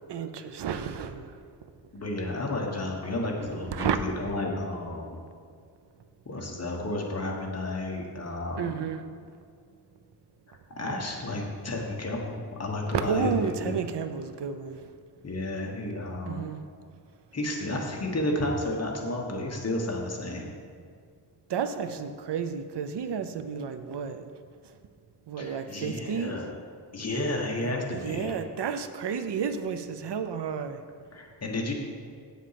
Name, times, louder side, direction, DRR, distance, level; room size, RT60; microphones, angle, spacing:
voice 1, 0.1-1.3 3.7-4.0 8.5-9.0 12.9-14.9 16.3-16.6 21.5-24.2 25.3-26.4 27.9-30.8, right 6 dB, 90° right, 9 dB, 0.7 m, -31 dB
voice 2, 1.9-5.2 6.2-8.8 10.8-13.7 15.2-16.5 17.3-20.5 25.4-26.4 26.9-28.3 31.1-31.7, left 1 dB, 40° left, -1 dB, 1.4 m, -32 dB
8.7 x 7.3 x 5.8 m, 2.1 s
wide cardioid pair, 150°, 40 cm